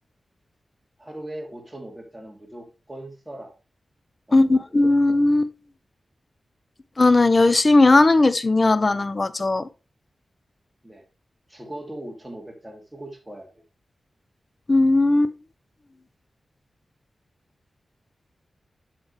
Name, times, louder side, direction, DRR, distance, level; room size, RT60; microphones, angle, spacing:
voice 1, 1.0-3.5 4.3-4.7 10.8-11.0 11.5-13.6, right 1 dB, 15° right, 2.6 m, -39 dB
voice 2, 4.3-5.5 7.0-9.7 14.7-15.3, left 2 dB, 40° left, 0.6 m, -17 dB
7.2 x 5.2 x 3.3 m
cardioid pair, 45°, 0 cm